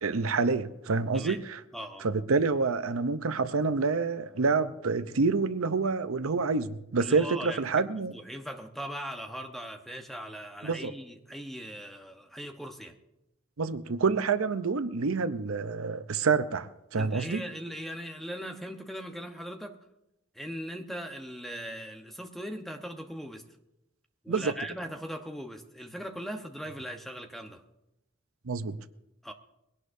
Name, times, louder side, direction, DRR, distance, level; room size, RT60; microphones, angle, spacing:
voice 1, 0.0-1.6 2.0-8.1 10.6-10.9 13.6-17.4 24.3-24.5 28.5-28.8, right 4 dB, 85° right, 0.7 m, -27 dB
voice 2, 1.7-2.1 7.0-13.0 17.0-19.8 20.3-23.5 24.2-27.6 29.2-29.3, equal, ahead, 1.0 m, -39 dB
22.0 x 17.5 x 2.7 m
head